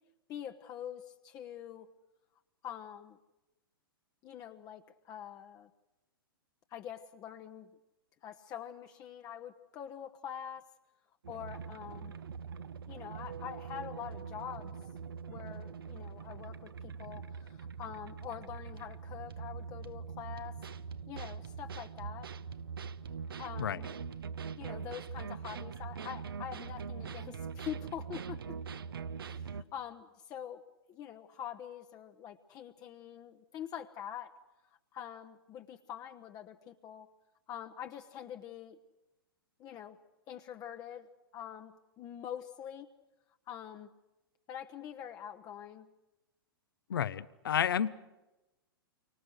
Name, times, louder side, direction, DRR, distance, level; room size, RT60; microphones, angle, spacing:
voice 1, 0.3-1.9 2.6-3.2 4.2-5.7 6.7-7.7 8.2-10.7 11.3-12.2 12.9-14.8 15.3-20.6 21.1-22.3 23.4-23.9 24.6-28.6 29.2-30.6 30.9-34.4 34.9-37.1 37.5-38.8 39.6-40.0 40.3-42.9 43.5-43.9 44.5-45.9, left 9 dB, 30° left, 5 dB, 1.1 m, -45 dB
sound 1, 11.2-29.6, right 6 dB, 70° right, 1.0 m, -43 dB
voice 2, 46.9-48.0, left 9 dB, 65° left, 16 dB, 1.0 m, -31 dB
29.5 x 24.5 x 6.5 m, 1.0 s
figure-of-eight pair, 110°, 12 cm